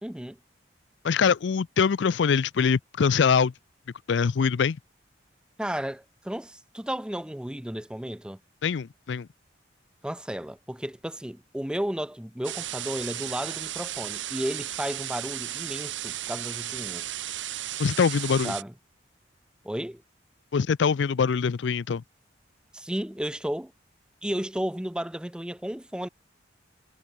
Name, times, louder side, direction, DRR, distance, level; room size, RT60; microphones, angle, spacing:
voice 1, 0.0-0.4 5.6-8.4 10.0-17.0 18.4-18.7 19.6-20.0 22.7-23.7 24.2-26.1, equal, 5° right, 0.5 m, -33 dB
voice 2, 1.0-3.5 4.1-4.8 8.6-9.3 17.8-18.5 20.5-22.0, left 6 dB, 80° left, 0.4 m, -23 dB
sound 1, 12.4-18.6, right 13 dB, 85° right, 1.5 m, -35 dB
head